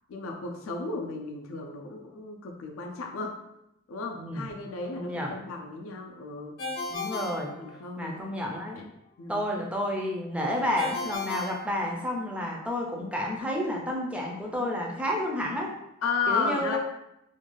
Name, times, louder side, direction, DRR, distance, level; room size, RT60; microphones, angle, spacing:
voice 1, 0.1-3.3 3.9-6.6 7.6-8.3 9.2-9.4 16.0-16.8, left 4 dB, 70° left, 2 dB, 0.4 m, -33 dB
voice 2, 4.1-4.5 5.0-5.4 6.9-7.5 8.0-8.8 9.3-15.7 16.3-16.8, left 1 dB, 5° right, -1 dB, 0.4 m, -30 dB
Ringtone, 6.6-8.3 10.8-12.4, left 3 dB, 50° left, 0.8 m, -36 dB
2.5 x 2.2 x 3.0 m, 0.84 s
head